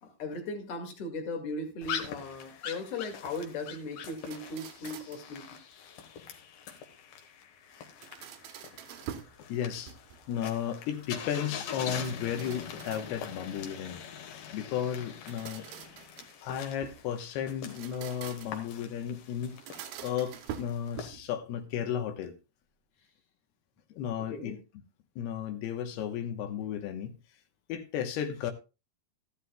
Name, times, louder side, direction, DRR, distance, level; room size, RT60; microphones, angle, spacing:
voice 1, 0.0-5.6 24.3-24.6, left 2 dB, 45° left, 2.7 m, -38 dB
sound 1, 1.8-21.1, left 7 dB, 70° left, 3.1 m, -44 dB
sound 2, 4.1-5.3 7.7-9.4 9.7-10.4 11.8-13.4 15.0-17.1 17.6-18.7 19.5-21.3, right 10 dB, 75° right, 2.6 m, -46 dB
voice 2, 9.5-9.9 10.3-15.7 16.4-19.6 20.0-22.3 23.9-24.6 25.2-27.2 27.7-28.5, left 9 dB, 90° left, 3.2 m, -34 dB
14.5 x 12.0 x 2.3 m
omnidirectional pair, 4.5 m